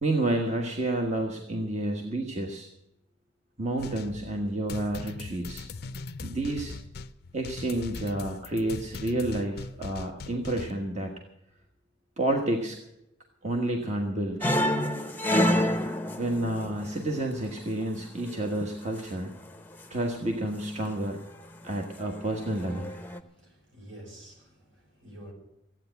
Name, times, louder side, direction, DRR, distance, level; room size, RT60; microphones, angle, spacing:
voice 1, 0.0-2.7 3.6-5.6 6.2-6.7 7.3-11.1 12.2-12.8 13.4-14.5 16.2-19.3 19.9-21.2 21.6-22.9, right 1 dB, 35° right, 2 dB, 1.4 m, -30 dB
sound 1, 3.8-10.7, left 3 dB, 50° left, 0.6 m, -40 dB
sound 2, 14.4-17.8 18.1-18.7 19.4-19.8 20.4-21.1 21.4-21.7 22.1-23.2, left 1 dB, 10° left, 0.8 m, -28 dB
voice 2, 23.2-25.3, right 1 dB, 70° right, 1 dB, 5.5 m, -49 dB
15.0 x 9.0 x 8.1 m, 0.84 s
head